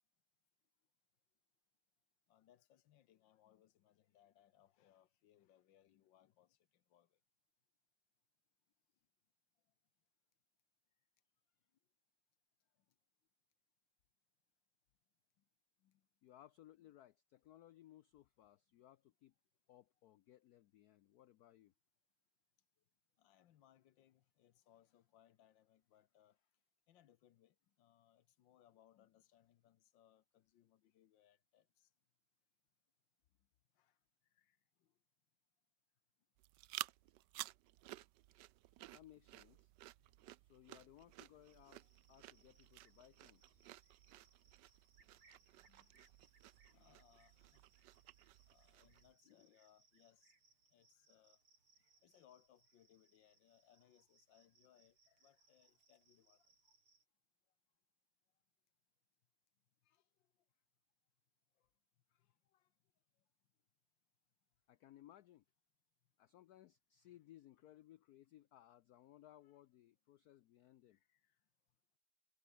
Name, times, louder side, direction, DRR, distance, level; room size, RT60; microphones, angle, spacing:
voice 1, 2.3-7.2 15.8-16.0 16.8-16.9 23.2-26.4 26.9-31.9 33.7-34.0 34.3-34.9 41.8-42.2 44.1-44.2 45.1-45.2 45.6-46.0 46.7-47.6 48.5-50.2 50.7-51.4 52.0-56.7 59.8-60.0 61.6-61.7 62.1-62.7 67.0-67.2 69.4-69.6 70.9-71.4, left 11 dB, 65° left, 1.5 m, -71 dB
voice 2, 16.2-19.3 19.7-21.7 38.9-39.7 40.4-43.6 64.7-65.4 66.2-71.0, left 13 dB, 85° left, 0.8 m, -63 dB
sound 1, 36.4-49.1, right 15 dB, 75° right, 1.0 m, -54 dB
sound 2, 39.6-46.3, left 1 dB, 15° left, 5.8 m, -92 dB
Cricket, 41.4-57.0, right 4 dB, 90° right, 5.8 m, -75 dB
omnidirectional pair, 2.3 m